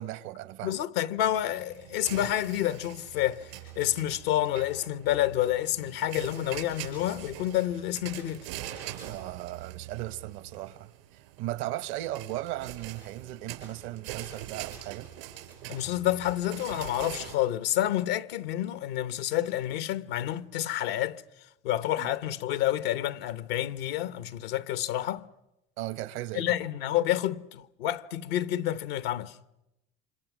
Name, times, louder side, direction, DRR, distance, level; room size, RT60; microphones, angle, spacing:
voice 1, 0.0-0.8 9.0-15.1 22.0-22.1 25.8-26.5, right 15 dB, 70° right, 1.1 m, -37 dB
voice 2, 0.6-3.5 3.8-8.4 15.7-21.2 21.6-25.2 26.3-29.3, left 13 dB, 85° left, 1.0 m, -29 dB
sound 1, 1.2-17.4, right 12 dB, 85° right, 4.8 m, -43 dB
28.0 x 26.0 x 6.2 m
supercardioid pair, 85°, 29 cm